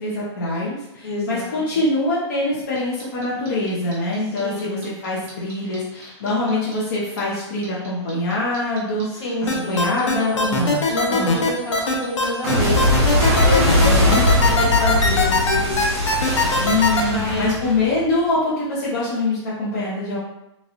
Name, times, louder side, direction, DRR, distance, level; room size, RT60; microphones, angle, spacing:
voice 1, 0.0-9.3 9.7-10.8 11.1-11.4 13.8-14.2 16.6-20.2, left 2 dB, 35° left, -7 dB, 0.6 m, -24 dB
voice 2, 1.0-1.8 4.4-4.9 9.2-10.0 10.9-13.0 13.4-16.0 17.1-17.5, left 2 dB, 70° left, -5 dB, 1.4 m, -27 dB
Clock, 2.8-5.8 6.0-9.0 9.3-18.1, left 1 dB, 30° right, 0.7 m, -20 dB
sound 1, 9.5-17.0, left 3 dB, 85° left, 0.7 m, -20 dB
2.9 x 2.9 x 2.5 m, 0.90 s
hypercardioid pair, 175°, 15 cm